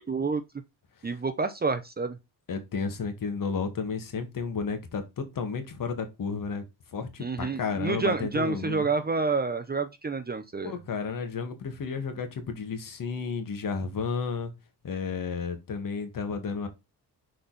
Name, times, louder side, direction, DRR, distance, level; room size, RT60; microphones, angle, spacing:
voice 1, 0.1-0.4 1.0-2.2 7.2-10.7, right 4 dB, 25° right, 0.8 m, -28 dB
voice 2, 2.5-6.6 6.9-8.9 10.6-14.5 14.8-16.7, left 5 dB, 55° left, 1.9 m, -32 dB
6.6 x 4.2 x 4.0 m
cardioid pair, 125°, 40 cm